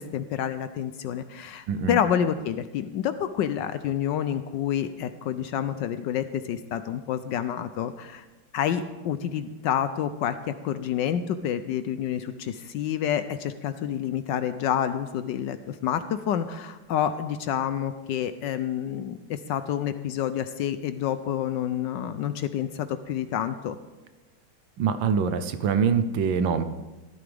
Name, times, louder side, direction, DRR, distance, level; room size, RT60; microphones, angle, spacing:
voice 1, 0.0-8.2 8.5-23.8, left 9 dB, 75° left, 11 dB, 1.1 m, -28 dB
voice 2, 1.7-2.0 24.8-26.6, right 6 dB, 70° right, 10 dB, 1.4 m, -24 dB
16.0 x 13.0 x 3.4 m, 1.1 s
omnidirectional pair, 2.3 m